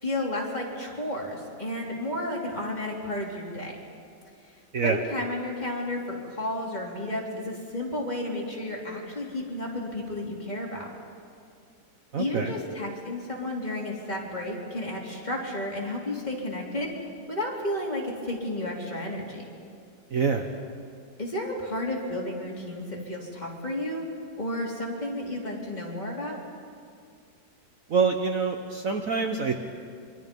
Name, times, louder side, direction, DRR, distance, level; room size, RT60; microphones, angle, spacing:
voice 1, 0.0-3.7 4.8-10.9 12.2-19.4 21.2-24.1 24.4-26.4, left 1 dB, 20° left, -3 dB, 3.5 m, -32 dB
voice 2, 12.1-12.5 20.1-20.4 27.9-29.5, right 5 dB, 50° right, 4 dB, 1.3 m, -25 dB
27.5 x 24.0 x 5.4 m, 2.3 s
omnidirectional pair, 2.0 m